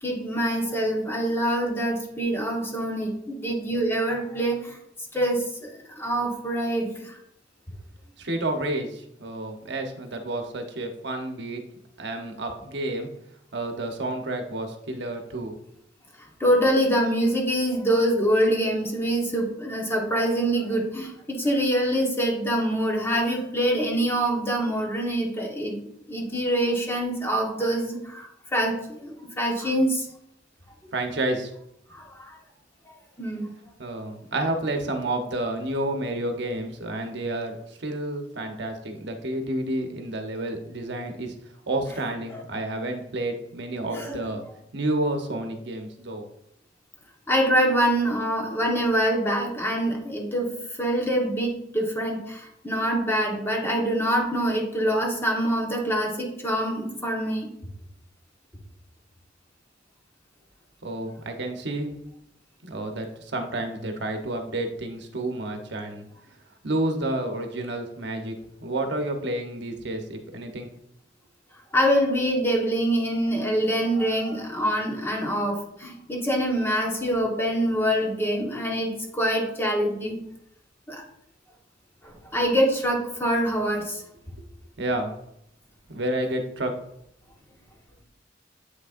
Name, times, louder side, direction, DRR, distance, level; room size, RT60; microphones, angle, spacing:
voice 1, 0.0-4.8 5.1-7.2 16.2-25.8 26.1-30.1 31.9-32.3 33.2-33.5 42.3-42.4 43.9-44.3 47.3-50.5 50.8-57.5 71.7-80.2 80.9-81.0 82.0-84.0, equal, 15° left, -1 dB, 1.3 m, -25 dB
voice 2, 8.2-11.6 12.0-13.1 13.5-15.5 30.9-31.5 33.8-41.3 41.7-44.4 44.7-46.3 60.8-61.9 62.6-66.1 66.6-68.3 68.6-70.7 84.8-85.1 85.9-86.7, right 1 dB, 65° right, 5 dB, 1.0 m, -30 dB
8.0 x 6.2 x 2.6 m, 0.76 s
head